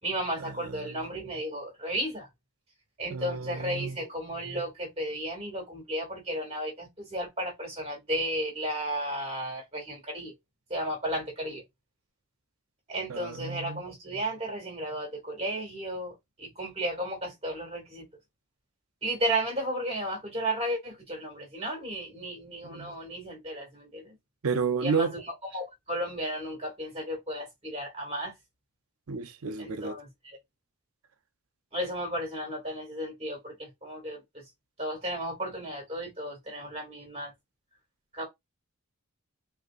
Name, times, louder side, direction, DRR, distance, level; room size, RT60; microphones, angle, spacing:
voice 1, 0.0-2.3 3.0-10.3 10.7-11.6 12.9-18.0 19.0-24.2 24.8-28.3 29.6-30.1 31.7-34.4 34.8-37.3 38.1-38.2, right 1 dB, 30° right, 2.2 m, -34 dB
voice 2, 3.1-4.0 13.1-13.8 22.6-22.9 24.4-25.1 29.1-30.0, right 5 dB, 75° right, 0.6 m, -31 dB
5.0 x 2.8 x 2.4 m
head